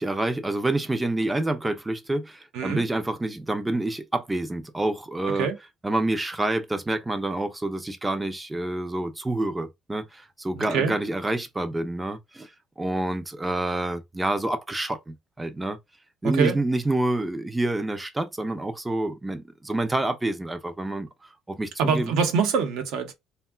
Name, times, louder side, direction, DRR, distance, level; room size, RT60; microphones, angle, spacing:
voice 1, 0.0-5.5 5.8-12.5 12.8-15.8 16.2-21.1 21.5-22.1, right 2 dB, 10° right, 0.5 m, -28 dB
voice 2, 10.5-10.9 16.2-16.6 21.8-23.1, right 5 dB, 75° right, 0.8 m, -24 dB
3.5 x 2.2 x 2.3 m
cardioid pair, 140°, 0 cm